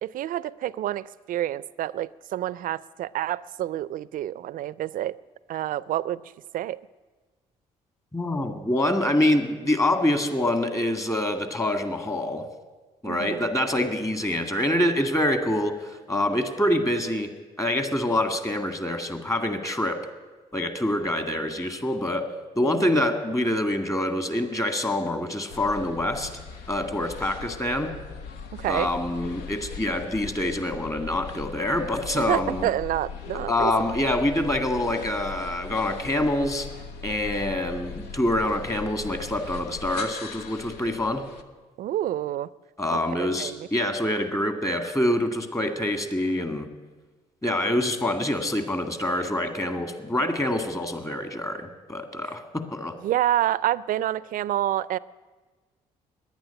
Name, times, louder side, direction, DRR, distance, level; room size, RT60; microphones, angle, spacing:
voice 1, 0.0-5.2 5.5-6.2 6.5-6.8 13.0-13.5 22.6-22.9 28.5-28.9 32.1-33.7 41.8-42.5 42.9-43.7 52.2-52.4 53.0-55.0, right 13 dB, 65° right, 20 dB, 0.4 m, -28 dB
voice 2, 8.1-12.4 13.0-17.3 17.6-20.0 20.5-22.3 22.6-26.3 26.7-27.9 28.7-32.7 33.5-36.7 37.0-41.2 42.8-46.7 47.4-52.9, left 1 dB, 20° left, 7 dB, 1.9 m, -26 dB
sound 1, 25.5-41.4, left 5 dB, 85° left, 0.8 m, -39 dB
10.5 x 9.5 x 10.0 m, 1.3 s
supercardioid pair, 60°, 15 cm